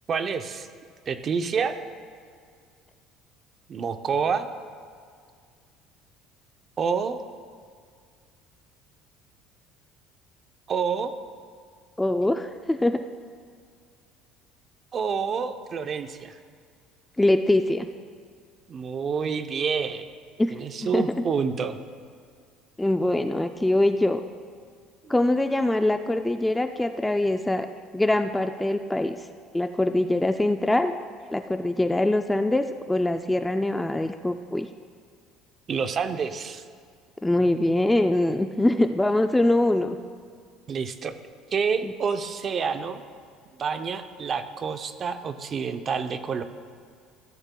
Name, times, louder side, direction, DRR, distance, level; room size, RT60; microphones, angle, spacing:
voice 1, 0.1-0.7 1.1-1.8 3.7-4.5 6.8-7.2 10.7-11.1 14.9-16.4 18.7-20.1 20.5-21.8 25.0-25.1 35.7-36.6 40.7-41.1 41.5-43.0 43.6-46.4, right 6 dB, 35° right, 9 dB, 0.6 m, -28 dB
voice 2, 12.0-13.0 17.2-17.9 20.4-20.5 20.9-21.0 22.8-24.2 25.1-27.7 27.9-29.2 29.5-30.9 31.3-34.7 37.2-40.0 41.8-41.9, left 1 dB, 5° left, 8 dB, 0.3 m, -23 dB
14.5 x 13.5 x 2.3 m, 2.1 s
cardioid pair, 130°, 0 cm